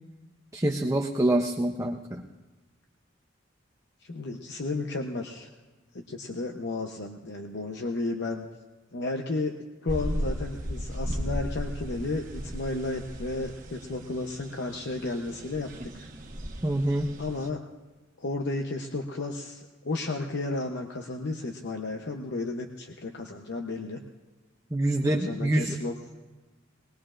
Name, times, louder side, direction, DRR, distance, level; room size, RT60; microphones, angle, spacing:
voice 1, 0.5-2.2 16.6-17.1 24.7-25.8, right 1 dB, 15° right, 3 dB, 0.6 m, -26 dB
voice 2, 4.0-5.5 5.9-8.5 8.9-9.5 9.8-16.1 17.2-17.6 18.2-24.0 25.0-26.0, left 2 dB, 60° left, 3 dB, 0.8 m, -33 dB
sound 1, 9.9-17.5, equal, 40° right, 1.3 m, -36 dB
21.0 x 19.5 x 2.5 m, 1.2 s
head